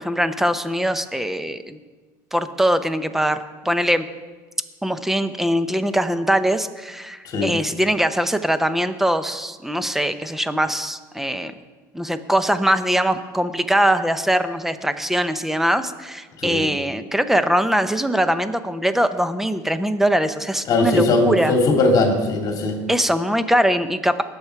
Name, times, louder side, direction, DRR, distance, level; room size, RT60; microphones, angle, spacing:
voice 1, 0.0-1.8 2.3-3.4 3.6-4.1 4.8-11.5 11.9-21.5 22.9-24.2, equal, 5° right, 10 dB, 0.8 m, -22 dB
voice 2, 20.7-22.8, left 2 dB, 45° left, 2 dB, 2.5 m, -19 dB
20.0 x 7.2 x 4.7 m, 1.3 s
supercardioid pair, 115°, 9 cm